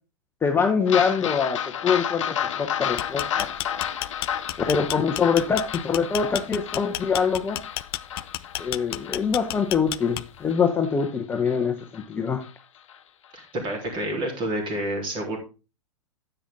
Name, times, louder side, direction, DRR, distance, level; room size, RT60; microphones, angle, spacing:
voice 1, 0.4-3.5 4.7-7.6 8.6-12.4, left 6 dB, 10° left, 4 dB, 0.9 m, -24 dB
sound 1, 0.9-11.6 11.9-12.0 12.4-12.5 12.9-13.0, left 9 dB, 60° left, 0.9 m, -32 dB
sound 2, 2.8-10.5, left 16 dB, 45° left, 0.5 m, -32 dB
voice 2, 13.3-15.4, right 1 dB, 30° right, 2 dB, 3.6 m, -29 dB
10.0 x 7.9 x 3.7 m, 0.31 s
figure-of-eight pair, 105°, 18 cm